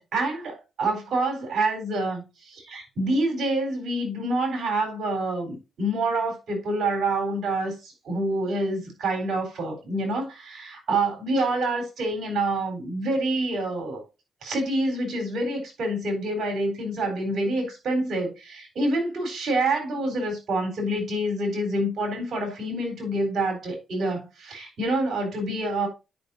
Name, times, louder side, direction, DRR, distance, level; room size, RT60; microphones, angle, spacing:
voice 1, 0.0-14.0 14.4-25.9, right 2 dB, 70° right, 3.9 m, -27 dB
10.5 x 5.8 x 2.6 m
cardioid pair, 80°, 0 cm